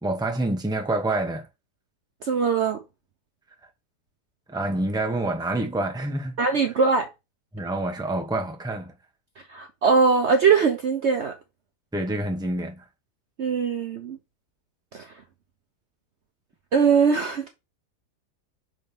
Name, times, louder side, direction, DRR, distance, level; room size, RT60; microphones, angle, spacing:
voice 1, 0.0-1.5 4.5-6.4 7.5-8.9 11.9-12.8, right 2 dB, 5° right, 1.0 m, -27 dB
voice 2, 2.2-2.8 6.4-7.1 9.5-11.3 13.4-14.2 14.9-15.1 16.7-17.5, right 5 dB, 55° right, 0.9 m, -21 dB
6.1 x 4.0 x 5.3 m
omnidirectional pair, 1.7 m